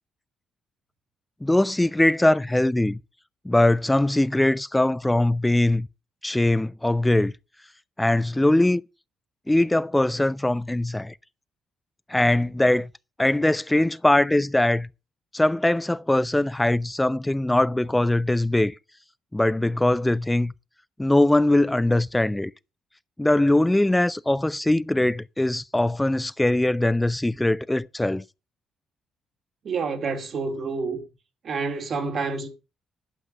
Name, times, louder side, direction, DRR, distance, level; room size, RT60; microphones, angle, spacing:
voice 1, 1.4-3.0 3.4-5.9 6.2-7.3 8.0-8.8 9.5-11.1 12.1-12.9 13.2-14.9 15.3-18.7 19.3-20.5 21.0-22.5 23.2-28.2, left 1 dB, 10° left, 0.5 m, -21 dB
voice 2, 29.6-31.0 31.4-32.5, right 4 dB, 55° right, 2.3 m, -28 dB
11.5 x 5.8 x 6.6 m
cardioid pair, 90°, 0 cm